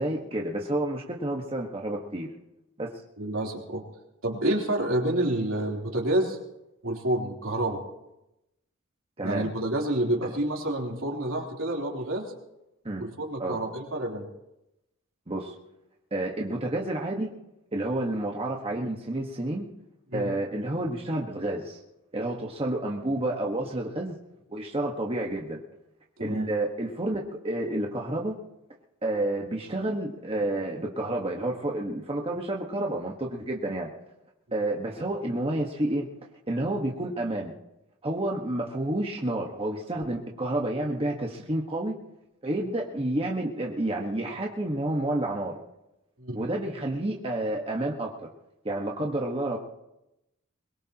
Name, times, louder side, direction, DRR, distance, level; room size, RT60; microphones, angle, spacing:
voice 1, 0.0-2.3 2.8-2.9 9.2-9.5 10.2-10.3 12.8-13.0 13.4-13.6 15.3-15.6 16.1-17.3 17.7-19.6 20.1-21.8 22.1-24.1 24.5-25.6 26.2-28.3 29.0-33.9 34.5-36.1 36.5-37.5 38.0-41.9 42.4-45.6 46.3-48.1 48.6-49.6, right 1 dB, 30° right, -1 dB, 1.4 m, -30 dB
voice 2, 3.2-3.8 4.2-6.4 6.8-7.8 9.2-12.3 13.0-14.2 20.1-20.3 26.2-26.5 46.2-46.4, right 1 dB, 70° right, -2 dB, 3.5 m, -28 dB
22.5 x 21.5 x 3.0 m, 0.90 s
head